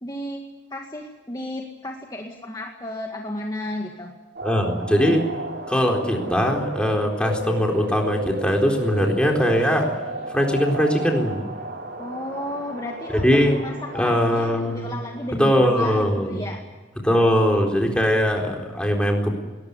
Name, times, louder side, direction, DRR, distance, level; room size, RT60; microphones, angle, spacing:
voice 1, 0.0-4.1 12.0-16.6, left 1 dB, 20° left, 1 dB, 1.9 m, -33 dB
voice 2, 4.4-5.3 5.7-9.9 10.3-11.4 13.2-13.6 13.9-14.9 15.4-16.4 17.0-19.4, equal, 5° left, 1 dB, 4.0 m, -21 dB
sound 1, 4.4-15.6, right 1 dB, 55° right, 4.0 m, -33 dB
21.0 x 19.5 x 9.6 m, 1.3 s
head